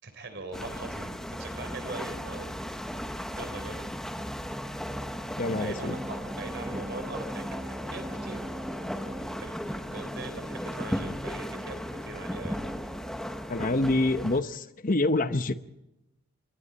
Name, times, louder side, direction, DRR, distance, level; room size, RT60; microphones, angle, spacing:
voice 1, 0.0-2.5 3.4-3.8 5.6-8.5 9.3-12.6, right 2 dB, 50° right, 8 dB, 3.9 m, -42 dB
sound 1, 0.5-14.4, equal, ahead, 1.1 m, -36 dB
voice 2, 5.4-5.9 13.5-15.5, left 2 dB, 35° left, 11 dB, 0.9 m, -26 dB
sound 2, 5.4-10.4, equal, 15° right, 1.3 m, -41 dB
28.0 x 22.5 x 4.2 m, 0.91 s
head